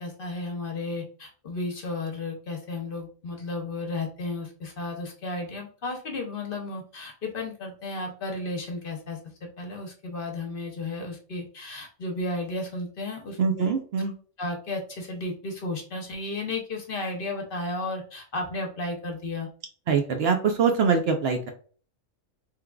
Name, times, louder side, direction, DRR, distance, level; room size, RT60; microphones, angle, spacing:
voice 1, 0.0-13.7 14.4-19.5, left 2 dB, 55° left, 2 dB, 0.8 m, -33 dB
voice 2, 13.4-14.1 19.9-21.5, right 5 dB, 60° right, 4 dB, 0.8 m, -23 dB
3.5 x 3.2 x 2.2 m, 0.42 s
omnidirectional pair, 1.3 m